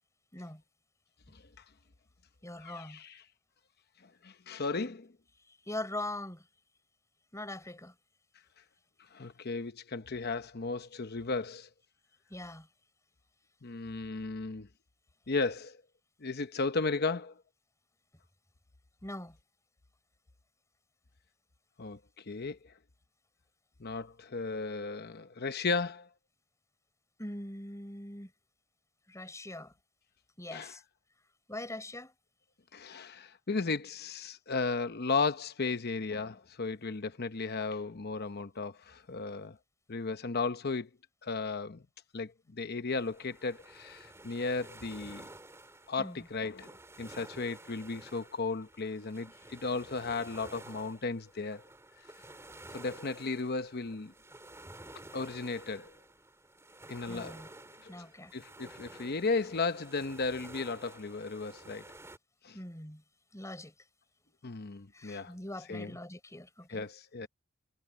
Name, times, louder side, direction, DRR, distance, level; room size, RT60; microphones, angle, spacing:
voice 1, 0.3-0.6 2.4-3.0 5.5-6.5 7.3-7.9 12.3-12.7 19.0-19.4 27.2-28.3 29.1-29.7 30.4-30.8 31.5-32.1 45.7-46.3 57.1-57.5 57.9-58.3 62.5-63.0 63.3-63.7 64.9-66.8, left 1 dB, 15° left, 6.2 m, -42 dB
voice 2, 2.6-3.2 4.2-5.1 9.1-11.7 13.6-14.7 15.3-15.8 16.2-17.3 21.8-22.7 23.8-26.1 30.5-30.7 32.7-39.6 39.9-40.9 41.2-41.8 42.1-45.3 45.9-51.6 52.7-54.1 55.1-55.9 56.9-57.4 57.8-57.9 58.3-61.8 62.4-62.6 64.4-65.3 65.7-65.9 66.7-67.3, left 4 dB, 50° left, 0.9 m, -35 dB
sound 1, 42.9-62.2, right 2 dB, 15° right, 3.1 m, -52 dB
head